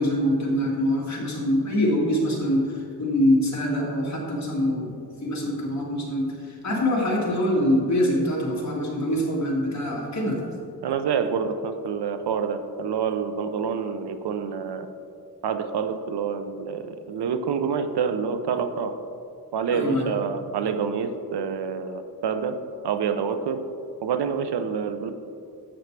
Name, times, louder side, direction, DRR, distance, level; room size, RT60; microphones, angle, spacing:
voice 1, 0.0-10.4 19.7-20.1, left 1 dB, 45° left, -3 dB, 2.2 m, -24 dB
voice 2, 10.8-14.9 15.4-19.0 19.5-22.6 22.8-23.6 24.0-25.1, right 6 dB, 85° right, 9 dB, 0.7 m, -27 dB
11.0 x 7.8 x 3.3 m, 2.5 s
wide cardioid pair, 110°, 39 cm